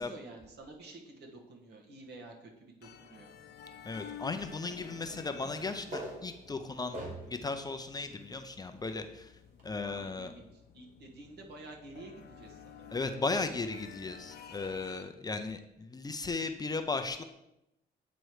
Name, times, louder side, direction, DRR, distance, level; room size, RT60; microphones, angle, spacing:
voice 1, 0.0-3.3 9.8-12.8, right 2 dB, 70° right, 1 dB, 1.4 m, -50 dB
sound 1, 2.8-15.0, left 8 dB, 65° left, 0.6 m, -52 dB
voice 2, 3.9-7.0 7.3-9.3 9.6-10.3 12.9-17.2, left 3 dB, 20° left, 7 dB, 0.5 m, -36 dB
sound 2, 4.4-7.5 8.1-8.2 9.6-9.7, right 1 dB, 50° right, 2.1 m, -44 dB
8.9 x 3.0 x 4.8 m, 0.87 s
cardioid pair, 105°, 18 cm